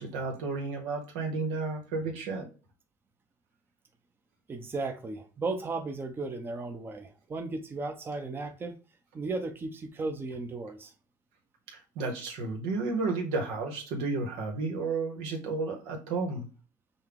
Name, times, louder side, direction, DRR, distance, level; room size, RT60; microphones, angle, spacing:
voice 1, 0.0-2.4 11.9-16.4, right 3 dB, 85° right, 1.3 m, -32 dB
voice 2, 4.5-8.7 9.1-10.9, right 3 dB, 25° right, 0.7 m, -35 dB
5.4 x 2.3 x 3.5 m
supercardioid pair, 100°, 9 cm